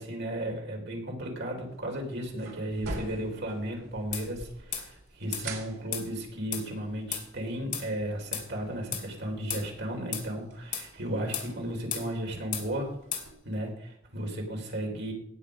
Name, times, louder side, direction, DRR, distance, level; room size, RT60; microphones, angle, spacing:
voice 1, 0.0-13.0 13.4-15.1, right 1 dB, 60° right, 1 dB, 3.9 m, -34 dB
sound 1, 1.7-13.3, right 2 dB, 80° right, 2.7 m, -47 dB
sound 2, 4.1-4.3 4.7-4.9 5.3-5.5 5.9-6.1 6.5-6.7 7.1-7.3 7.7-7.9 8.3-8.5 8.9-9.1 9.5-9.7 10.1-10.3 10.7-10.9 11.3-11.5 11.9-12.1 12.5-12.7 13.1-13.3, left 8 dB, 40° left, 2.5 m, -34 dB
18.0 x 7.6 x 5.1 m, 0.71 s
head